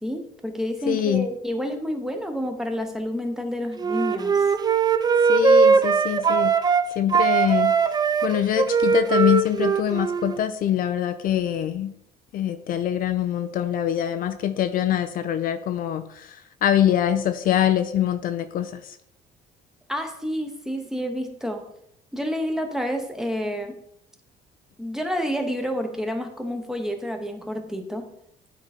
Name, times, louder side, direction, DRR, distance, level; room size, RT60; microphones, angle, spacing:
voice 1, 0.0-4.4 19.9-21.6 22.1-23.8 24.8-28.1, equal, 5° right, 4 dB, 1.0 m, -29 dB
voice 2, 0.9-1.3 5.3-6.5 7.0-7.7 8.2-11.9 12.3-19.0, left 10 dB, 55° left, 10 dB, 0.5 m, -24 dB
Wind instrument woodwind instrument, 3.8-6.8 7.1-10.4, right 5 dB, 25° right, 0.4 m, -20 dB
9.0 x 3.8 x 4.3 m, 0.76 s
cardioid pair, 110°, 17 cm